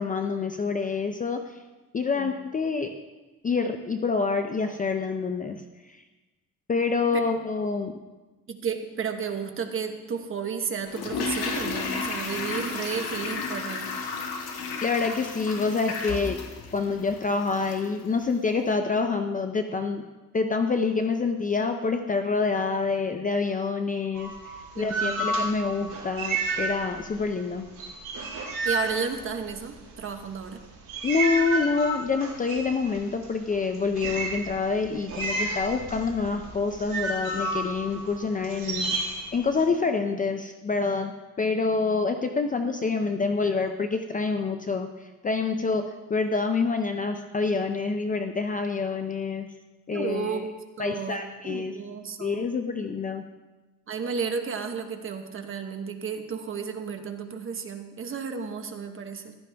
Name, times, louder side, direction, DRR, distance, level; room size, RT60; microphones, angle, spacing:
voice 1, 0.0-1.4 1.9-3.0 3.4-5.6 6.7-8.0 14.8-16.4 16.7-20.0 20.3-27.7 31.0-39.0 39.3-44.9 45.2-49.5 49.9-50.5 50.8-51.7 52.2-53.2, left 4 dB, 20° left, 6 dB, 0.5 m, -27 dB
voice 2, 8.5-13.9 24.7-25.3 28.6-30.6 49.9-52.5 53.9-59.4, right 6 dB, 35° right, 6 dB, 1.0 m, -33 dB
Toilet flush, 10.9-18.0 18.2-18.3, left 4 dB, 70° left, 1.8 m, -33 dB
sound 1, 24.2-27.3 27.5-29.8 30.4-39.6, right 2 dB, 55° right, 4.9 m, -31 dB
15.5 x 12.0 x 3.4 m, 1.2 s
cardioid pair, 175°, 37 cm